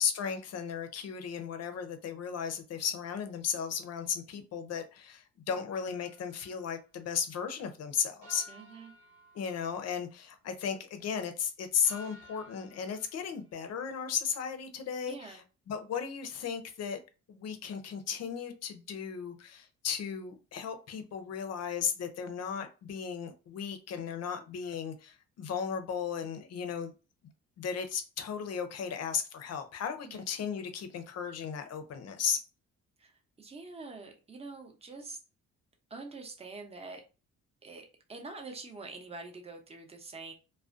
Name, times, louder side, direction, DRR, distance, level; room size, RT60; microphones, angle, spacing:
voice 1, 0.0-8.5 9.3-15.4 15.7-17.0 17.3-26.9 27.6-32.4, left 7 dB, 55° left, 0.6 m, -35 dB
sound 1, 5.8-6.7 8.2-10.0 11.8-13.5, left 1 dB, 70° right, 1.1 m, -54 dB
voice 2, 8.5-8.9 15.0-15.4 30.0-30.3 33.0-35.2 35.9-37.0 37.6-40.3, right 3 dB, 20° right, 0.6 m, -45 dB
2.4 x 2.1 x 2.4 m
cardioid pair, 90°, 30 cm